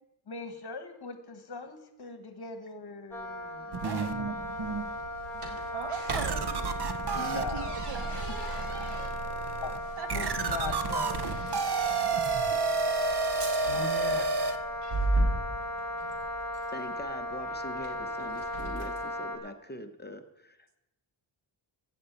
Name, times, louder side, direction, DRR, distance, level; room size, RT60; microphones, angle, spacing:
voice 1, 0.3-3.8 7.1-7.8 9.6-9.7 10.1-11.2 13.6-14.3, left 4 dB, 50° left, 8 dB, 1.6 m, -39 dB
Wind instrument woodwind instrument, 3.1-19.4, left 1 dB, 5° left, 3.2 m, -37 dB
sound 1, 3.7-4.9 5.4-5.6 6.1-14.6, right 4 dB, 50° right, 0.9 m, -31 dB
sound 2, 4.1-19.1, right 2 dB, 85° right, 2.5 m, -38 dB
voice 2, 5.7-8.2 10.0-10.8 13.7-14.3, right 7 dB, 70° right, 10 dB, 1.3 m, -41 dB
voice 3, 16.7-20.7, left 1 dB, 20° left, 7 dB, 0.9 m, -43 dB
15.5 x 5.6 x 8.3 m, 0.94 s
wide cardioid pair, 150°, 50 cm